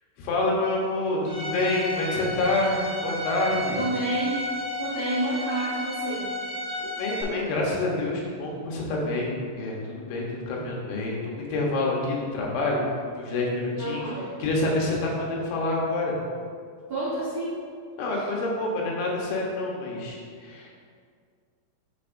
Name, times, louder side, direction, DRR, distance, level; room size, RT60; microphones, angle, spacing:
voice 1, 0.2-3.8 6.8-12.8 13.2-14.1 14.4-16.1 18.0-20.7, left 2 dB, 80° left, -2 dB, 3.4 m, -27 dB
Bowed string instrument, 1.3-7.2, left 1 dB, 60° right, 2.0 m, -32 dB
voice 2, 3.7-4.4 4.8-6.3 13.8-14.3 16.9-17.6 18.1-18.2, right 1 dB, 75° right, -9 dB, 1.5 m, -29 dB
11.5 x 4.5 x 2.6 m, 2.1 s
omnidirectional pair, 5.1 m